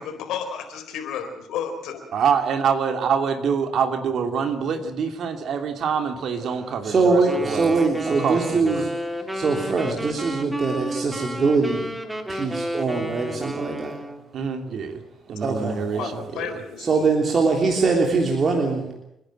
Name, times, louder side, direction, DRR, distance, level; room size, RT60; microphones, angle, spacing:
voice 1, 0.0-2.0 15.9-17.1, left 7 dB, 90° left, 6 dB, 4.2 m, -32 dB
voice 2, 2.1-7.7 8.1-8.8 14.3-15.0 15.3-16.5, right 6 dB, 65° right, 6 dB, 2.8 m, -25 dB
voice 3, 6.8-8.9 9.3-11.9 12.3-14.0 15.4-16.1 16.8-18.9, right 4 dB, 45° right, 1 dB, 3.4 m, -22 dB
Wind instrument woodwind instrument, 7.3-14.2, right 1 dB, 10° right, 2.9 m, -31 dB
30.0 x 10.5 x 9.0 m, 0.84 s
cardioid pair, 90°, 0 cm